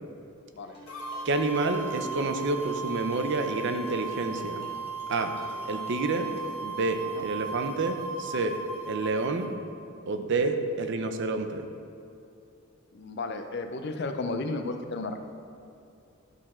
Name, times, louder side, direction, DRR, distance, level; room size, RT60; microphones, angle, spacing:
sound 1, 0.7-6.6, left 2 dB, 30° left, 1.4 m, -49 dB
sound 2, 0.9-9.5, right 4 dB, 85° left, 1.1 m, -37 dB
voice 1, 1.2-4.7 5.1-5.3 5.6-6.3 6.6-8.6 8.9-9.5 10.1-11.7, right 3 dB, 55° right, 7 dB, 0.6 m, -29 dB
voice 2, 12.9-15.2, left 3 dB, 55° left, 7 dB, 0.5 m, -33 dB
11.5 x 4.3 x 4.3 m, 2.6 s
head